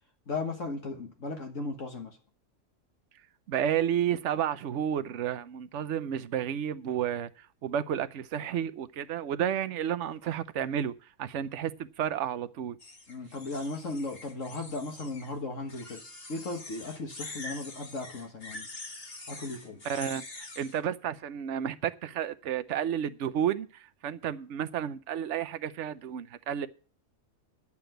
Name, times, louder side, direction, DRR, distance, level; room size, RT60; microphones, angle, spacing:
voice 1, 0.3-2.2 13.1-16.0 16.3-18.7 19.3-19.8, left 3 dB, 60° left, 1.8 m, -36 dB
voice 2, 3.5-12.8 19.8-26.7, right 9 dB, 60° right, 1.0 m, -31 dB
sound 1, 12.8-15.3 15.7-20.8, left 2 dB, 40° left, 1.9 m, -45 dB
11.0 x 7.2 x 7.9 m
omnidirectional pair, 1.5 m